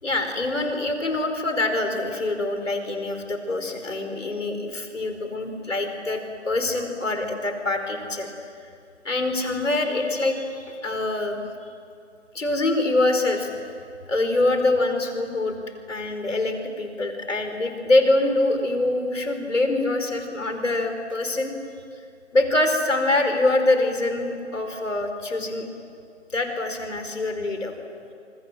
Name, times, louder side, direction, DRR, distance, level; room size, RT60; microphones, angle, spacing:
voice 1, 0.0-8.3 9.0-11.4 12.3-13.5 14.1-15.5 15.9-21.5 22.3-25.7 26.3-27.7, left 2 dB, 80° left, 6 dB, 5.0 m, -24 dB
27.0 x 25.0 x 7.7 m, 2.3 s
figure-of-eight pair, 165°, 37 cm